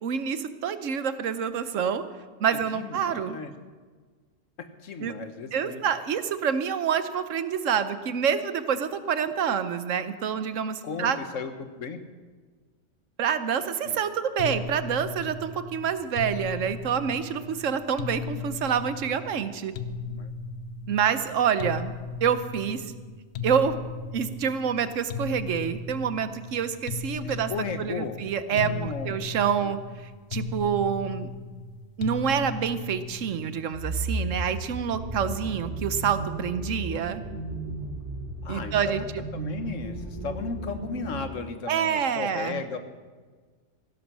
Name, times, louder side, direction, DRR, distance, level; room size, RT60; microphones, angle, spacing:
voice 1, 0.0-2.0 2.4-3.4 5.0-5.2 5.5-11.2 13.2-19.7 20.9-21.9 22.2-22.9 23.4-23.8 24.1-27.5 27.8-29.8 30.3-31.3 32.0-37.2 38.5-39.0 41.7-42.6, right 7 dB, 85° right, 12 dB, 1.2 m, -27 dB
voice 2, 2.5-3.5 4.6-5.8 10.8-12.0 13.8-14.0 20.2-20.3 27.2-28.2 28.5-29.1 29.6-29.7 35.4-35.6 38.4-39.1 39.3-42.8, left 5 dB, 90° left, 8 dB, 1.5 m, -35 dB
sound 1, 14.4-33.7, left 4 dB, 65° left, 1.0 m, -37 dB
sound 2, 33.7-41.3, right 2 dB, 60° right, 2.5 m, -34 dB
16.0 x 11.5 x 6.2 m, 1.4 s
omnidirectional pair, 1.3 m